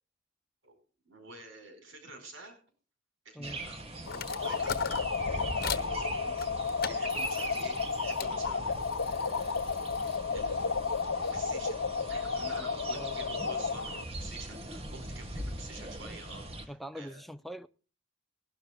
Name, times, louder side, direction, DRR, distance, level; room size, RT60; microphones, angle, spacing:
voice 1, 1.0-2.5 3.2-4.8 5.2-6.4 6.9-9.6 10.3-11.8 12.1-17.2, right 2 dB, 75° right, 5.0 m, -49 dB
sound 1, 3.4-16.7, right 1 dB, 30° right, 1.6 m, -41 dB
sound 2, 4.0-5.9 6.4-8.3 8.7-11.4, left 8 dB, 50° left, 1.2 m, -42 dB
sound 3, 4.1-14.0, left 5 dB, 70° left, 0.8 m, -33 dB
voice 2, 16.7-17.7, equal, ahead, 0.5 m, -43 dB
20.5 x 12.0 x 2.3 m
head